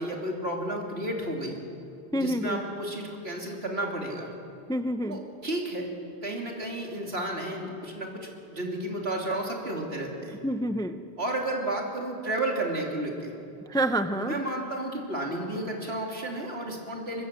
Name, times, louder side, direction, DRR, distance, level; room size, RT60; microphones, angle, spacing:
voice 1, 0.0-1.6 2.1-4.3 5.1-5.9 6.2-10.4 11.2-13.3 14.1-17.2, right 1 dB, 70° right, 0 dB, 3.5 m, -32 dB
voice 2, 2.1-2.6 4.7-5.2 10.4-11.0 13.7-14.3, right 1 dB, 5° left, 9 dB, 0.6 m, -27 dB
24.5 x 20.5 x 7.7 m, 2.5 s
omnidirectional pair, 1.1 m